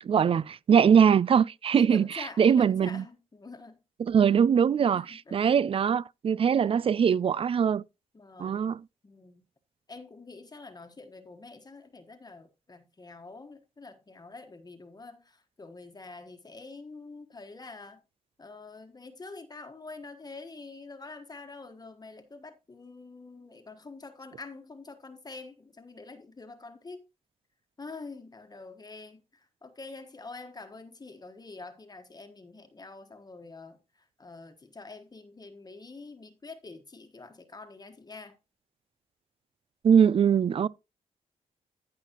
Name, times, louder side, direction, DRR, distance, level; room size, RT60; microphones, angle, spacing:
voice 1, 0.0-3.0 4.0-7.8 8.4-8.8 39.8-40.7, right 7 dB, 45° right, 0.4 m, -22 dB
voice 2, 1.8-3.8 4.3-4.4 4.9-5.4 8.1-8.7 9.0-9.4 9.9-18.0 18.4-27.0 27.8-38.4, left 3 dB, 30° left, 1.3 m, -46 dB
15.0 x 5.7 x 2.9 m
cardioid pair, 80°, 14 cm